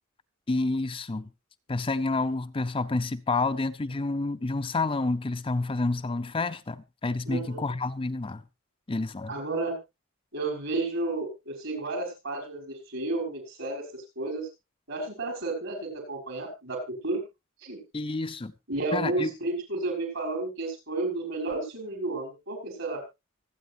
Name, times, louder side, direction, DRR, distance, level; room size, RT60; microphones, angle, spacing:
voice 1, 0.5-1.3 1.7-8.4 8.9-9.3 17.9-18.5 18.9-19.3, left 3 dB, 25° left, 0.6 m, -29 dB
voice 2, 7.2-7.6 9.3-9.8 10.3-14.4 14.9-17.2 17.6-17.8 18.7-23.0, right 2 dB, 70° right, 6.2 m, -32 dB
25.0 x 8.7 x 2.6 m
head